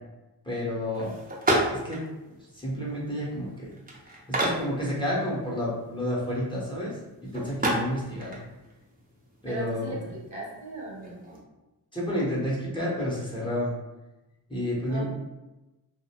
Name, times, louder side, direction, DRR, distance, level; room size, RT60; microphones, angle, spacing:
voice 1, 0.4-1.1 1.7-2.0 2.5-3.7 4.3-6.9 7.2-8.4 9.4-9.9 11.9-13.7 14.5-15.0, left 1 dB, 10° left, -6 dB, 0.8 m, -30 dB
sound 1, 0.9-11.4, right 1 dB, 20° right, 0.6 m, -33 dB
voice 2, 9.4-11.2 14.9-15.0, right 2 dB, 45° right, -5 dB, 0.9 m, -38 dB
2.5 x 2.0 x 2.8 m, 1.0 s
cardioid pair, 70°, 41 cm